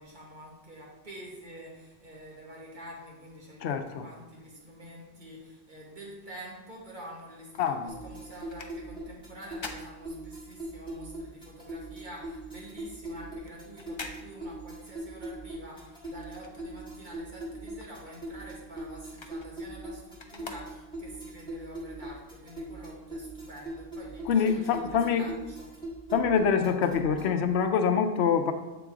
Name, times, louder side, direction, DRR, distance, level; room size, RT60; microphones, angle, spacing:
voice 1, 0.0-25.7, equal, 45° right, -3 dB, 1.7 m, -47 dB
voice 2, 3.6-4.0 7.6-7.9 24.3-25.2 26.1-28.5, left 6 dB, 80° left, 7 dB, 0.9 m, -25 dB
sound 1, 7.2-10.8 11.1-17.1 17.4-21.2 21.7-21.8, left 3 dB, 35° left, 0.4 m, -48 dB
sound 2, 7.9-27.4, right 1 dB, 5° left, 1.5 m, -41 dB
8.1 x 3.9 x 3.6 m, 1.1 s
omnidirectional pair, 1.1 m